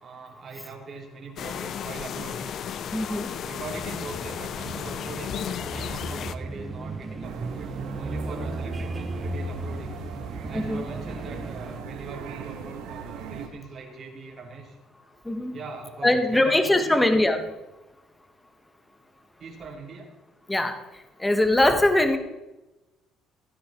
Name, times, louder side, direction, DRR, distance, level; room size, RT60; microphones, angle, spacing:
voice 1, 0.0-2.5 3.4-7.7 7.9-10.0 10.5-14.8 15.5-17.0 19.4-20.1 21.9-22.2, right 4 dB, 40° right, -1 dB, 4.0 m, -41 dB
sound 1, 1.4-6.3, left 8 dB, 55° left, 0.7 m, -34 dB
voice 2, 2.9-3.3 10.5-10.9 15.2-15.5 16.0-17.4 20.5-20.8 21.2-22.2, left 1 dB, 10° left, 7 dB, 1.5 m, -21 dB
sound 2, 3.6-11.8, right 2 dB, 25° right, 1.1 m, -36 dB
sound 3, 7.2-13.5, right 6 dB, 80° right, 2.1 m, -39 dB
16.5 x 9.7 x 4.5 m, 1.0 s
cardioid pair, 100°, 0 cm